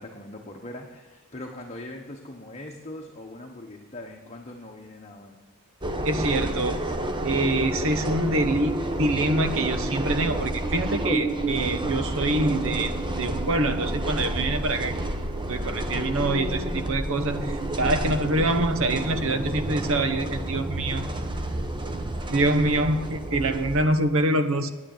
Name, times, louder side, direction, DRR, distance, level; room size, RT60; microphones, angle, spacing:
voice 1, 0.0-5.4 18.0-18.2 22.8-22.9, left 1 dB, 30° left, 0 dB, 1.1 m, -41 dB
sound 1, 5.8-23.8, right 1 dB, 20° right, 1.0 m, -30 dB
voice 2, 6.0-6.8 7.2-12.9 13.2-14.9 15.5-21.0 22.3-24.7, right 2 dB, 65° right, 9 dB, 1.0 m, -25 dB
9.8 x 9.6 x 7.7 m, 1.3 s
head